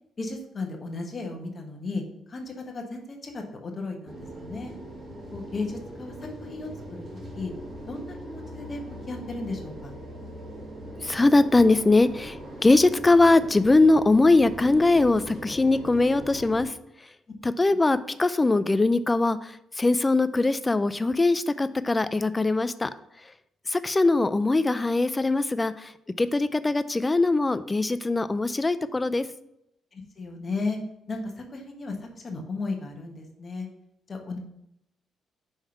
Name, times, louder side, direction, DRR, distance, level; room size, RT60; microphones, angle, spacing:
voice 1, 0.2-2.0 2.3-4.7 5.3-7.0 7.3-7.5 7.9-9.9 29.9-30.8 31.1-33.7 34.1-34.4, left 3 dB, 40° left, 2 dB, 1.2 m, -35 dB
sound 1, 4.1-16.7, equal, 45° right, 2.0 m, -40 dB
voice 2, 11.0-12.4 12.6-16.7 17.4-22.9 23.7-25.9 26.2-29.2, left 2 dB, 20° left, 13 dB, 0.4 m, -21 dB
5.5 x 3.5 x 5.7 m, 0.80 s
cardioid pair, 90°, 0 cm